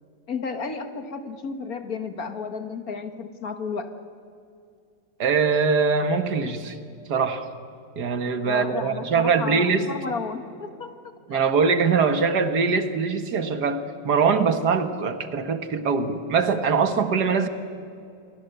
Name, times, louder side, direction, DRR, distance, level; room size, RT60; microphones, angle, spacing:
voice 1, 0.3-3.9 8.5-11.4, left 5 dB, 55° left, 8 dB, 1.9 m, -33 dB
voice 2, 5.2-6.8 7.1-7.5 8.0-9.9 11.3-17.5, right 5 dB, 65° right, 9 dB, 1.9 m, -22 dB
27.5 x 23.0 x 8.0 m, 2.4 s
omnidirectional pair, 1.9 m